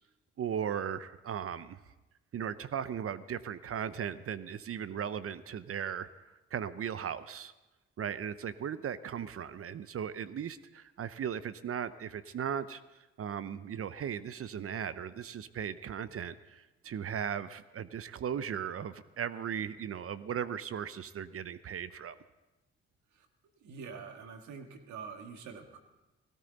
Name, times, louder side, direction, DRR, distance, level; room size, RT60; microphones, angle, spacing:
voice 1, 0.4-1.8 2.3-7.5 8.0-12.8 13.2-22.2, right 8 dB, 50° right, 15 dB, 0.7 m, -37 dB
voice 2, 23.6-25.8, right 5 dB, 70° right, 5 dB, 1.8 m, -45 dB
18.0 x 17.0 x 4.0 m, 1.1 s
hypercardioid pair, 50°, 30 cm